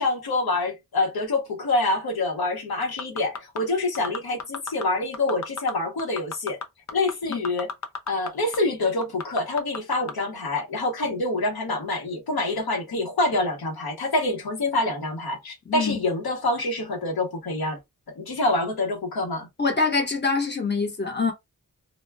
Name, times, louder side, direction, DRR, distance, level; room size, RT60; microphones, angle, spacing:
voice 1, 0.0-6.6 6.9-7.7 8.1-17.8 18.2-19.5, left 2 dB, 85° left, 0.9 m, -26 dB
sound 1, 2.8-3.6 3.9-4.8 5.1-5.7 6.0-8.3 8.5-8.6 9.0-10.1 10.6-10.7, left 5 dB, 50° left, 0.6 m, -32 dB
voice 2, 15.7-16.0 19.6-21.3, left 4 dB, 30° left, 1.0 m, -24 dB
2.2 x 2.2 x 3.3 m
wide cardioid pair, 70°, 36 cm